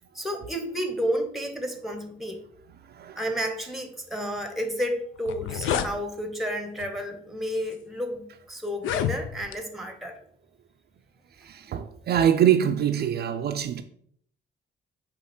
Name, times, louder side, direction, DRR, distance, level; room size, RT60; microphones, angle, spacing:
voice 1, 0.1-2.4 3.2-10.2, equal, ahead, 0.9 m, -31 dB
sound 1, 4.8-4.9 5.2-5.9 6.8-7.0 7.7-7.8 8.7-9.6, left 9 dB, 80° left, 0.4 m, -29 dB
voice 2, 11.4-13.8, right 9 dB, 55° right, 0.4 m, -24 dB
5.0 x 2.5 x 4.2 m
cardioid pair, 90°, 20 cm